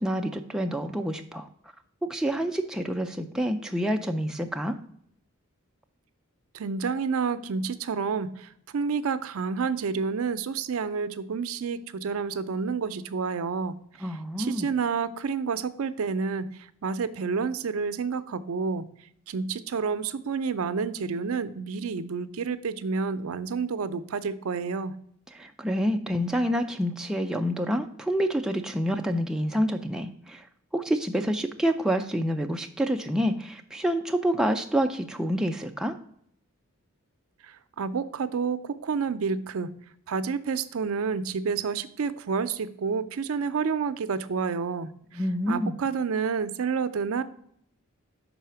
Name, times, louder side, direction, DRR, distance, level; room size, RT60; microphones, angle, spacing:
voice 1, 0.0-1.5 2.0-4.8 14.0-14.7 25.3-30.5 30.7-36.0 45.1-45.7, equal, 5° right, 3 dB, 0.3 m, -27 dB
voice 2, 6.5-13.8 14.4-18.9 19.3-25.0 37.4-39.7 40.1-45.2 45.5-47.2, right 5 dB, 75° right, 12 dB, 0.4 m, -29 dB
5.6 x 4.1 x 5.6 m, 0.67 s
head